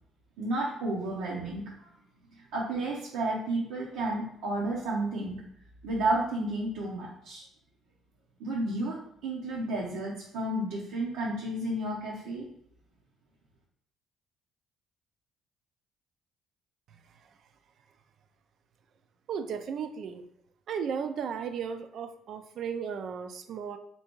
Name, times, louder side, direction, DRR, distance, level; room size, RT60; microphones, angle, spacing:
voice 1, 0.4-1.9 2.3-5.4 5.8-7.4 8.4-9.0 9.2-12.5, right 2 dB, 90° right, -5 dB, 0.8 m, -32 dB
voice 2, 19.3-20.2 20.7-23.8, right 6 dB, 65° right, 8 dB, 0.4 m, -35 dB
3.4 x 2.8 x 4.4 m, 0.69 s
supercardioid pair, 70°, 0 cm